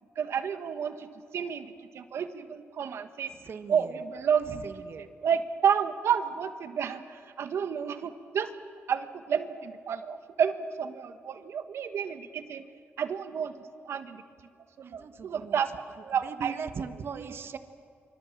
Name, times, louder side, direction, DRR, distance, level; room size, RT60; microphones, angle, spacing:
voice 1, 0.2-1.1 1.3-3.3 3.7-4.7 5.0-8.5 8.9-12.6 13.0-13.5 13.8-14.2 14.8-15.7 16.0-16.6 17.1-17.3, right 7 dB, 75° right, 9 dB, 1.5 m, -30 dB
voice 2, 3.4-3.9 4.6-5.1 14.8-15.6 16.2-17.6, right 6 dB, 60° right, 8 dB, 1.6 m, -39 dB
25.0 x 25.0 x 7.4 m, 2.3 s
cardioid pair, 95°, 5 cm